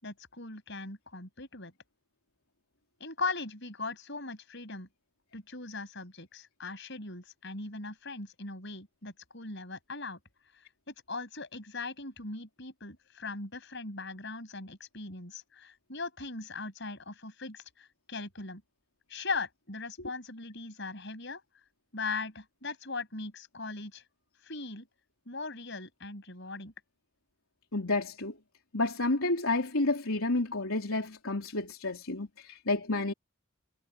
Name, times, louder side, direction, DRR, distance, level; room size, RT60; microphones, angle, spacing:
voice 1, 0.0-1.7 3.0-4.9 5.3-10.2 10.9-18.6 19.1-21.4 21.9-24.0 24.4-24.9 25.3-26.7, left 3 dB, 55° left, 7.0 m, -39 dB
voice 2, 27.7-28.3 28.7-33.1, left 2 dB, 80° left, 3.5 m, -30 dB
head